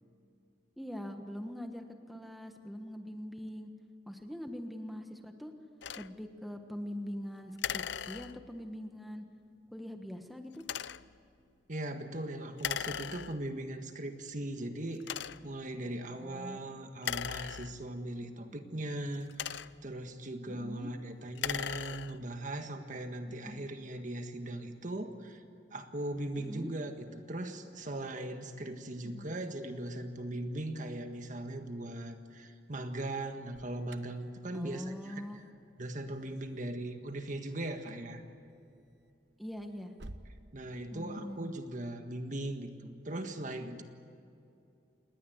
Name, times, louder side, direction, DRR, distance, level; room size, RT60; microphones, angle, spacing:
voice 1, 0.8-3.7 4.1-5.5 6.0-9.2 9.7-10.6 16.1-16.7 20.5-20.9 23.3-23.7 26.4-26.7 29.0-29.3 34.5-35.4 39.4-39.9 40.9-41.5, equal, ahead, 5 dB, 1.3 m, -43 dB
sound 1, 5.8-6.1 7.6-8.6 10.6-11.1 12.6-13.6 14.3-14.4 15.0-15.6 17.0-18.1 19.1-20.0 21.2-22.3, left 9 dB, 70° left, 0.5 m, -38 dB
voice 2, 11.7-25.4 25.7-35.2 35.8-38.2 40.5-43.8, right 1 dB, 45° right, 6 dB, 1.7 m, -39 dB
Alarm, 33.5-40.3, right 1 dB, 70° right, 1.1 m, -57 dB
29.0 x 20.0 x 8.0 m, 2.6 s
head